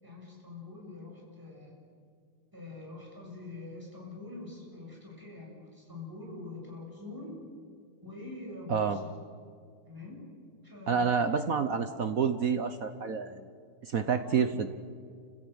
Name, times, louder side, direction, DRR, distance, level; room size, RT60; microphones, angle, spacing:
voice 1, 0.0-1.7 2.5-7.4 8.0-9.0 9.8-10.2 10.6-11.7 14.2-14.5, left 2 dB, 10° right, -2 dB, 6.7 m, -45 dB
voice 2, 10.9-13.5 13.8-14.7, right 6 dB, 55° right, 9 dB, 1.0 m, -28 dB
29.5 x 16.0 x 8.0 m, 2.2 s
omnidirectional pair, 2.3 m